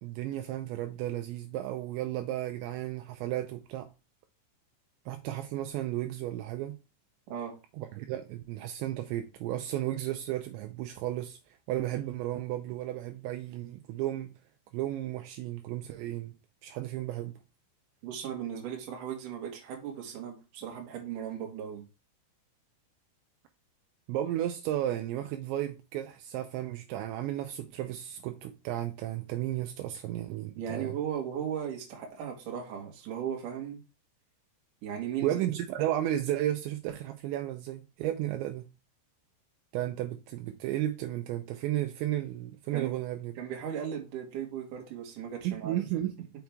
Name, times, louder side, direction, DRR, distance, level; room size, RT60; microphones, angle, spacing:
voice 1, 0.0-3.9 5.1-6.8 7.8-11.4 11.7-14.3 14.7-16.3 16.6-17.4 24.1-31.0 35.2-38.7 39.7-43.3 45.4-46.3, right 13 dB, 85° right, 2.6 m, -33 dB
voice 2, 18.0-21.8 30.5-33.8 34.8-35.4 42.7-42.9 43.4-45.8, right 9 dB, 55° right, 2.4 m, -37 dB
6.2 x 6.0 x 3.5 m
omnidirectional pair, 5.9 m